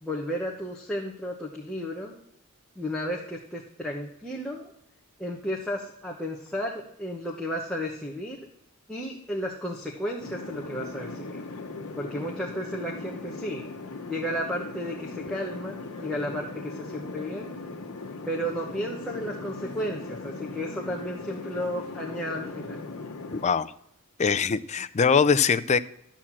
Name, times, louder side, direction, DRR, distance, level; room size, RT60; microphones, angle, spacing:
voice 1, 0.0-2.1 2.8-4.7 5.2-6.7 7.0-8.4 8.9-11.4 12.0-13.6 14.1-17.5 18.2-22.8, equal, 5° left, -3 dB, 1.0 m, -33 dB
sound 1, 10.2-23.5, left 3 dB, 85° left, 1.1 m, -39 dB
voice 2, 23.3-23.7 24.2-25.8, left 6 dB, 30° left, 12 dB, 0.4 m, -22 dB
12.5 x 4.3 x 7.4 m, 0.77 s
head